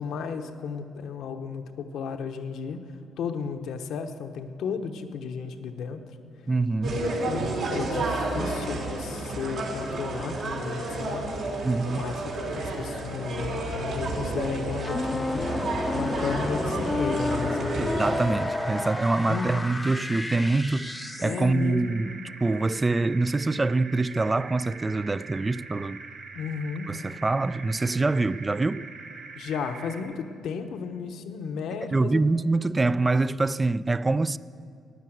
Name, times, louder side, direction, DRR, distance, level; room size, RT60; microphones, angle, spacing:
voice 1, 0.0-6.0 6.8-11.2 11.8-15.5 15.9-17.9 19.3-19.6 21.2-22.0 26.3-26.9 29.4-32.3, left 6 dB, 75° left, 0.9 m, -34 dB
voice 2, 6.5-7.0 11.6-12.0 17.8-26.0 26.9-28.9 31.9-34.4, right 3 dB, 20° right, 0.3 m, -25 dB
sound 1, 6.8-18.2, right 2 dB, 75° right, 2.9 m, -31 dB
sound 2, 14.8-21.5, left 2 dB, 20° left, 0.6 m, -31 dB
sound 3, 17.3-30.0, right 4 dB, 55° right, 3.0 m, -43 dB
14.5 x 9.7 x 7.8 m
cardioid pair, 90°, 0 cm